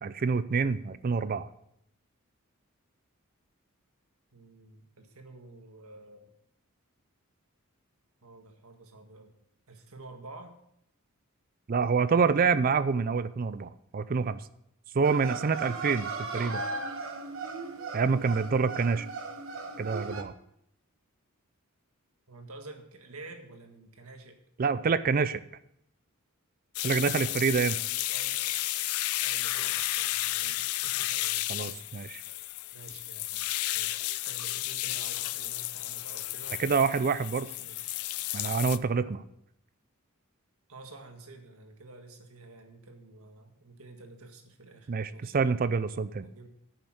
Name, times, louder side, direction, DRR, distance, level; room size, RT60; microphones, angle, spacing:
voice 1, 0.0-1.5 11.7-14.4 14.9-16.6 17.9-19.1 19.8-20.3 24.6-25.4 26.8-27.8 31.5-32.2 36.6-37.5 38.3-39.2 44.9-46.3, right 5 dB, 40° right, 14 dB, 0.4 m, -27 dB
voice 2, 4.3-6.3 8.2-9.3 9.7-10.6 22.3-24.4 28.0-28.4 29.1-31.8 32.7-33.5 33.7-36.6 37.4-38.0 40.7-45.4 46.2-46.5, right 2 dB, 85° right, 4 dB, 1.7 m, -50 dB
sound 1, 15.0-20.2, right 3 dB, 65° right, 1.2 m, -37 dB
sound 2, 26.7-38.8, left 16 dB, 90° left, 0.4 m, -32 dB
10.5 x 6.7 x 6.3 m, 0.74 s
head